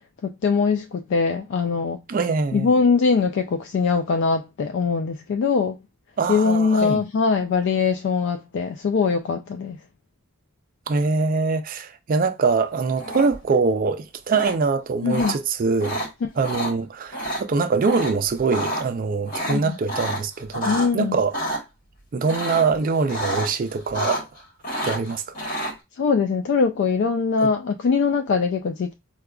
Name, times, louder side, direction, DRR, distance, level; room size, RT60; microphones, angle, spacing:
voice 1, 0.2-2.0 2.5-5.8 6.3-9.8 15.0-15.4 19.5-19.7 20.6-21.2 26.0-28.9, left 5 dB, 55° left, 0.3 m, -22 dB
voice 2, 2.1-2.7 6.2-7.0 10.9-16.0 16.4-21.3 22.1-24.3 24.8-25.2 27.4-27.5, right 4 dB, 40° right, 0.4 m, -23 dB
sound 1, 13.0-13.5 14.3-14.5 15.1-15.3 15.8-16.1 16.4-16.7 17.1-17.4 17.8-18.1 18.4-18.8 19.3-20.9 21.3-21.6 22.3-22.7 23.1-23.5 23.8-24.4 24.6-25.7, equal, 40° left, 1.2 m, -28 dB
4.8 x 2.3 x 2.3 m
head